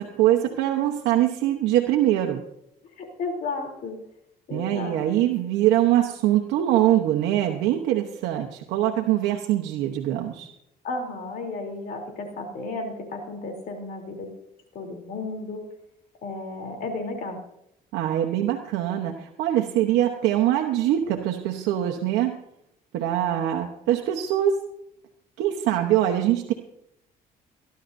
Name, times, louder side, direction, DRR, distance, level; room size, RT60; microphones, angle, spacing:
voice 1, 0.0-2.4 4.5-10.5 17.9-22.4 22.9-24.6 25.4-26.5, right 12 dB, 90° right, 2 dB, 1.1 m, -23 dB
voice 2, 3.0-4.0 4.5-5.3 10.8-14.3 14.7-15.6 16.2-17.4, left 3 dB, 60° left, 3 dB, 3.3 m, -33 dB
24.0 x 11.5 x 2.7 m, 0.79 s
cardioid pair, 110°, 17 cm